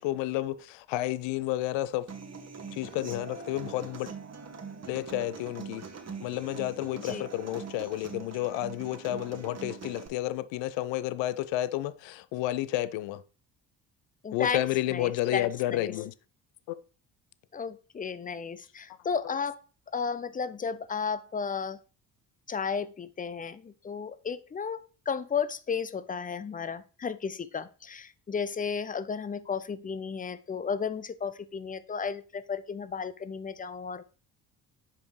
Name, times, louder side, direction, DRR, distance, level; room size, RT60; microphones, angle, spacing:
voice 1, 0.0-2.1 2.7-4.1 4.9-5.9 6.2-13.2 14.3-16.1 16.7-16.8, left 15 dB, 65° left, 0.5 m, -31 dB
Human voice / Acoustic guitar, 2.1-10.1, right 5 dB, 30° right, 1.3 m, -42 dB
voice 2, 14.2-14.6 14.9-15.9 17.5-19.6 19.9-21.8 22.5-24.8 25.1-34.0, left 6 dB, 20° left, 0.4 m, -33 dB
7.3 x 5.1 x 3.1 m
hypercardioid pair, 50°, 49 cm